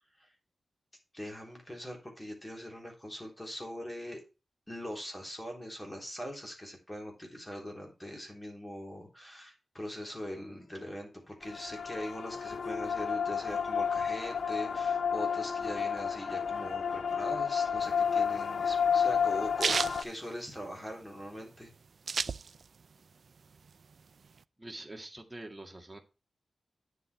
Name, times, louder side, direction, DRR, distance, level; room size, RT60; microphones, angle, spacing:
voice 1, 1.1-4.2 4.7-19.8 20.0-21.7, equal, 15° left, 1 dB, 3.5 m, -41 dB
sound 1, 11.4-20.0, left 7 dB, 70° left, 0.5 m, -31 dB
sound 2, 17.9-21.0 21.4-21.5 21.6-22.9 23.3-24.4, right 5 dB, 60° right, 0.3 m, -33 dB
voice 2, 24.6-26.0, right 2 dB, 15° right, 3 dB, 1.9 m, -45 dB
9.6 x 7.7 x 3.3 m, 0.30 s
wide cardioid pair, 140°, 0 cm